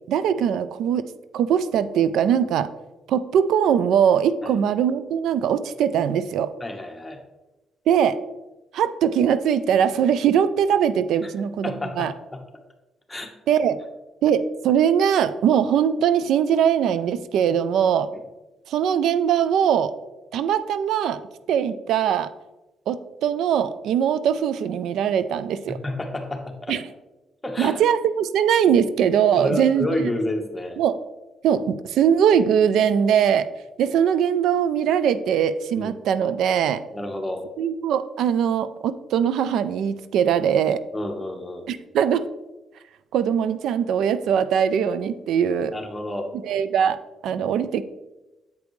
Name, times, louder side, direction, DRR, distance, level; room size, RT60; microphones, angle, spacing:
voice 1, 0.1-1.1 1.3-2.7 3.1-6.5 7.9-8.2 8.7-12.1 13.5-13.8 14.2-18.1 18.7-19.9 20.3-21.2 21.5-22.3 22.9-25.8 26.7-26.8 27.6-29.9 30.8-31.0 31.4-33.5 33.8-36.8 37.6-40.8 41.7-42.3 43.1-45.7 46.4-47.0 47.2-47.8, right 8 dB, 80° right, 13 dB, 0.3 m, -21 dB
voice 2, 6.6-7.2 11.2-11.3 11.6-12.4 13.1-13.3 18.1-18.2 25.8-26.8 27.4-27.8 29.4-30.8 35.7-35.9 36.9-37.4 40.9-41.7 45.7-46.3, left 1 dB, 10° left, 3 dB, 1.1 m, -30 dB
8.0 x 5.0 x 3.1 m, 1.0 s
cardioid pair, 95°, 0 cm